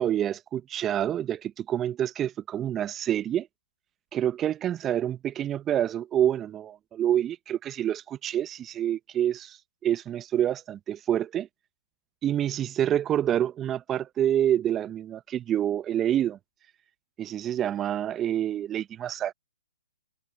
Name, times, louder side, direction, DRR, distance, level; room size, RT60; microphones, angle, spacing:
voice 1, 0.0-3.5 4.1-11.5 12.2-16.4 17.2-19.3, right 10 dB, 20° right, 0.6 m, -27 dB
hypercardioid pair, 130°, 0 cm